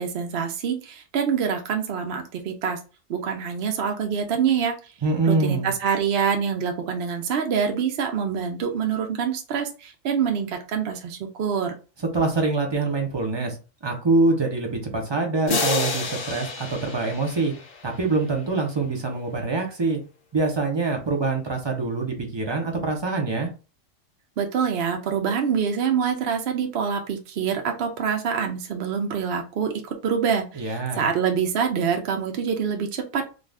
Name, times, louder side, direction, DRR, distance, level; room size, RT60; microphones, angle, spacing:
voice 1, 0.0-2.8 3.1-4.7 5.3-11.7 24.4-33.2, right 7 dB, 60° right, 3 dB, 0.7 m, -25 dB
voice 2, 5.0-5.7 12.1-13.6 13.8-17.5 17.8-20.0 20.3-23.5 30.5-31.0, right 3 dB, 35° right, 2 dB, 0.4 m, -24 dB
sound 1, 15.5-18.3, left 3 dB, 50° left, 0.7 m, -29 dB
2.5 x 2.3 x 3.3 m, 0.32 s
omnidirectional pair, 1.4 m